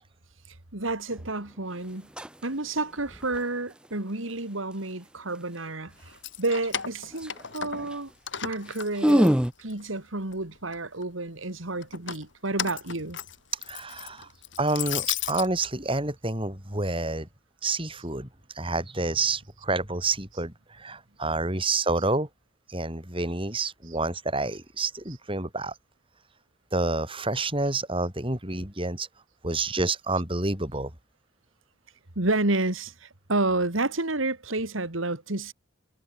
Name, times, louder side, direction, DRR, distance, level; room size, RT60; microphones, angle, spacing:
voice 1, 0.7-2.1 2.4-8.1 8.4-13.2 32.2-35.5, right 2 dB, 90° right, 3.0 m, -30 dB
sound 1, 1.1-1.3 1.9-2.4 2.8-3.4 6.8-6.9 7.1-7.5 7.8-8.0 8.4-8.5 8.7-9.5, equal, 5° right, 0.8 m, -24 dB
Keys jangling, 6.1-8.0 8.3-9.9 10.3-11.0 11.8-15.5, left 9 dB, 65° left, 3.1 m, -35 dB
voice 2, 13.7-14.3 14.6-17.3 17.6-18.3 18.5-22.3 22.7-25.7 26.7-29.1 29.4-30.9, right 3 dB, 25° right, 6.0 m, -28 dB
head